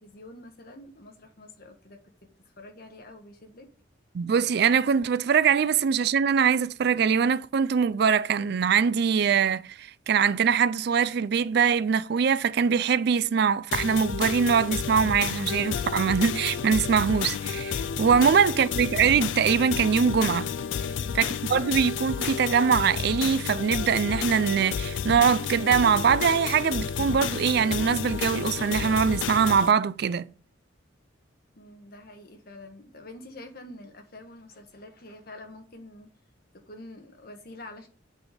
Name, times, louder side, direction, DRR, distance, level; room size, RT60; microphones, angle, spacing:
voice 1, 0.0-2.0 2.6-3.7 18.1-18.4 20.7-21.3 31.5-36.1 36.5-37.9, left 1 dB, 50° left, 1.3 m, -46 dB
voice 2, 4.1-20.5 21.1-30.3, right 6 dB, 55° right, 0.4 m, -23 dB
sound 1, 13.7-29.7, left 7 dB, 75° left, 0.4 m, -31 dB
8.0 x 4.1 x 5.0 m
head